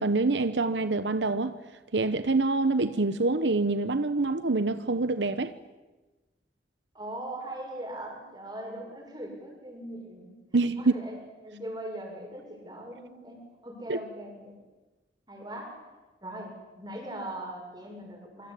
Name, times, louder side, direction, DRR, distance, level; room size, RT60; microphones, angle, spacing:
voice 1, 0.0-1.6 1.9-5.5 10.5-10.9 13.9-14.0, right 3 dB, 85° right, 1.0 m, -26 dB
voice 2, 6.9-10.3 10.8-14.5 15.3-15.7 16.2-18.5, right 1 dB, 25° right, 6.9 m, -40 dB
27.0 x 24.5 x 8.6 m
head